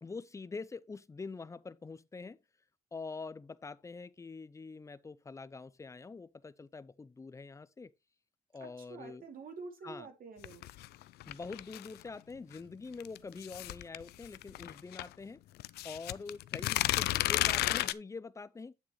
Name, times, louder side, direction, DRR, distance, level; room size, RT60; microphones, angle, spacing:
voice 1, 0.0-2.4 2.9-7.9 8.5-9.2 9.8-10.1 11.3-15.4 15.8-18.8, left 4 dB, 20° left, 0.6 m, -45 dB
voice 2, 8.6-10.6, right 4 dB, 65° right, 2.6 m, -47 dB
sound 1, 10.4-12.0 13.0-15.1 15.6-17.9, left 16 dB, 85° left, 0.4 m, -32 dB
8.8 x 7.4 x 3.1 m
cardioid pair, 100°, 16 cm